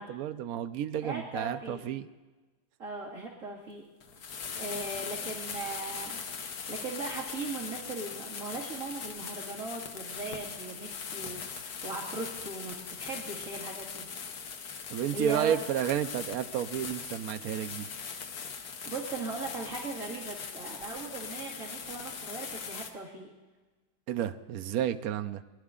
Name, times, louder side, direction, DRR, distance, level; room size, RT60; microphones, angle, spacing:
voice 1, 0.0-2.1 14.9-17.9 24.1-25.4, right 10 dB, 70° right, 9 dB, 1.1 m, -31 dB
voice 2, 1.0-1.8 2.8-3.8 4.6-14.1 15.1-15.5 18.9-23.3, right 3 dB, 55° right, -4 dB, 2.5 m, -39 dB
sound 1, 4.0-22.9, left 6 dB, 75° left, 1.5 m, -40 dB
21.5 x 11.5 x 3.7 m, 1.2 s
omnidirectional pair, 1.6 m